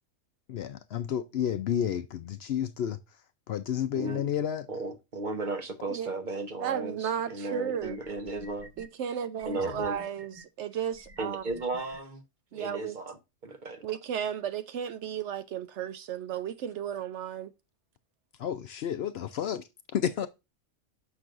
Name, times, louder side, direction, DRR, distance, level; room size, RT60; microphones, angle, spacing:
voice 1, 0.5-3.0 3.5-4.7 9.6-9.8 18.4-20.3, left 9 dB, 65° left, 0.7 m, -31 dB
voice 2, 3.9-4.3 4.7-8.7 9.5-10.0 11.2-12.2 12.5-13.8, right 3 dB, 40° right, 1.1 m, -35 dB
voice 3, 6.6-8.0 8.8-11.4 12.5-13.0 13.8-17.5, right 9 dB, 70° right, 0.8 m, -34 dB
sound 1, 7.3-7.4 7.8-8.9 9.4-10.4 10.9-12.0, right 1 dB, 20° right, 1.3 m, -51 dB
6.8 x 6.1 x 2.4 m
omnidirectional pair, 1.3 m